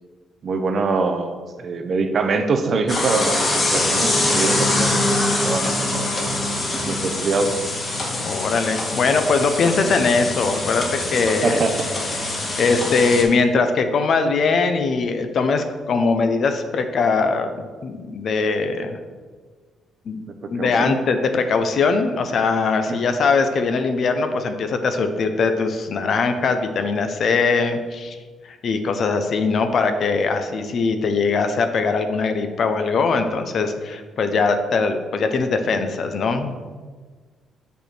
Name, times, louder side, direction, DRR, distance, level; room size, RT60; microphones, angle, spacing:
voice 1, 0.4-5.1 5.4-6.1 6.9-7.6 11.4-11.9 20.5-20.9 22.9-23.2, right 4 dB, 50° right, 7 dB, 0.8 m, -24 dB
sound 1, 2.9-13.2, left 2 dB, 40° left, 1.9 m, -23 dB
voice 2, 8.2-11.6 12.6-17.5 17.8-19.0 20.1-28.2 28.5-36.6, left 4 dB, 55° left, 7 dB, 0.7 m, -21 dB
6.6 x 5.4 x 4.5 m, 1.5 s
cardioid pair, 90°, 0 cm